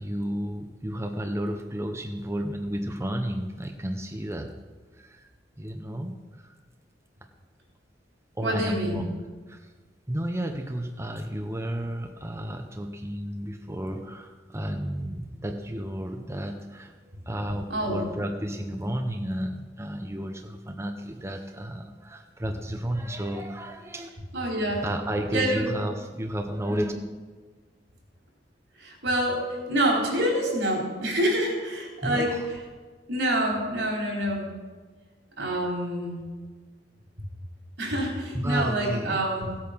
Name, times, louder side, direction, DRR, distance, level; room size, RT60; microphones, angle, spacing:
voice 1, 0.0-4.5 4.9-5.3 5.6-6.1 6.4-6.6 8.3-9.1 9.5-9.7 10.1-16.9 17.2-24.1 24.8-26.9 32.0-32.5 38.3-39.2, right 1 dB, 15° right, 4 dB, 0.8 m, -32 dB
voice 2, 8.4-9.0 17.7-18.0 24.3-24.9 25.3-25.7 26.7-26.9 28.8-32.4 33.1-34.5 35.4-36.2 37.8-39.5, right 1 dB, 75° right, -1 dB, 4.2 m, -27 dB
16.0 x 8.6 x 6.0 m, 1.4 s
head